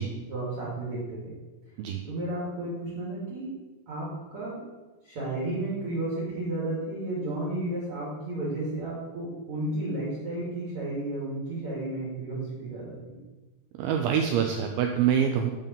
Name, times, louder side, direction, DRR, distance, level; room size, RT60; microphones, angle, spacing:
voice 1, 0.3-1.3 2.1-3.5 3.9-4.6 5.0-13.2, right 2 dB, 45° right, -6 dB, 2.2 m, -33 dB
voice 2, 13.7-15.5, right 8 dB, 85° right, 4 dB, 2.2 m, -25 dB
10.5 x 3.6 x 5.3 m, 1.2 s
omnidirectional pair, 4.8 m